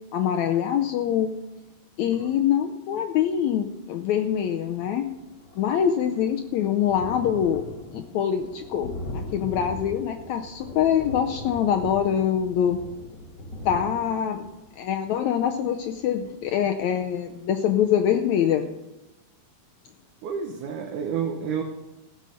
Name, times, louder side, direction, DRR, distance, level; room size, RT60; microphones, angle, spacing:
voice 1, 0.1-1.3 2.0-5.1 5.6-7.6 7.9-12.8 13.6-14.5 14.8-18.7, left 9 dB, 80° left, 5 dB, 1.7 m, -24 dB
Thunder, 4.4-4.5 4.7-17.3 17.8-17.9 18.2-18.3, left 1 dB, 35° left, 2.1 m, -40 dB
voice 2, 20.2-21.6, right 7 dB, 70° right, 2 dB, 2.4 m, -29 dB
15.5 x 6.3 x 6.9 m, 1.1 s
omnidirectional pair, 3.9 m